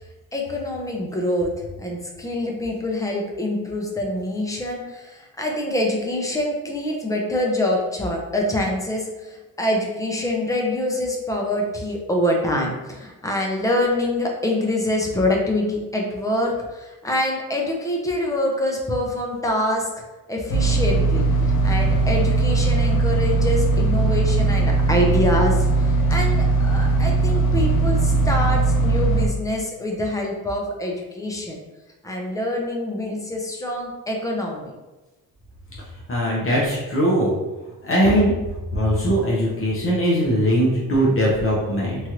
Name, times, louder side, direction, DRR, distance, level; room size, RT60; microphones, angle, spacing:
voice 1, 0.3-19.9 20.3-31.6 32.0-34.7, left 1 dB, 10° left, 0 dB, 0.4 m, -25 dB
sound 1, 20.5-29.3, right 3 dB, 75° left, 0.6 m, -19 dB
voice 2, 36.1-37.3 37.8-38.3 38.7-42.0, equal, 35° left, -5 dB, 0.7 m, -20 dB
3.0 x 2.4 x 2.9 m, 1.1 s
cardioid pair, 145°, 36 cm